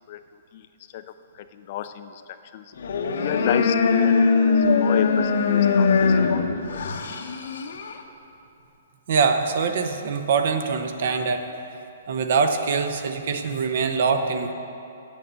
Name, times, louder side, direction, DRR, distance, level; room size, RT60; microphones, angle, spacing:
voice 1, 0.9-2.7 3.2-6.8, left 10 dB, 40° left, 10 dB, 0.4 m, -32 dB
sound 1, 2.8-8.0, left 5 dB, 70° left, 0.8 m, -21 dB
voice 2, 9.1-11.4 12.1-14.5, right 5 dB, 55° right, 7 dB, 0.8 m, -23 dB
8.4 x 6.8 x 7.5 m, 2.8 s
hypercardioid pair, 160°, 0 cm